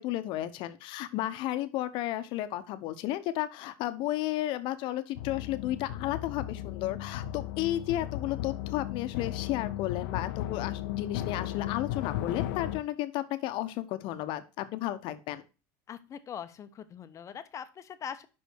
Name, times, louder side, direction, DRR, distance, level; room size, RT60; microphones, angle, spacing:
voice 1, 0.0-15.4, left 14 dB, 55° left, 11 dB, 0.9 m, -33 dB
sound 1, 5.2-12.8, left 12 dB, 85° left, 0.6 m, -36 dB
voice 2, 15.9-18.3, left 8 dB, 30° left, 11 dB, 0.8 m, -42 dB
5.6 x 5.5 x 6.2 m, 0.32 s
supercardioid pair, 120°, 10 cm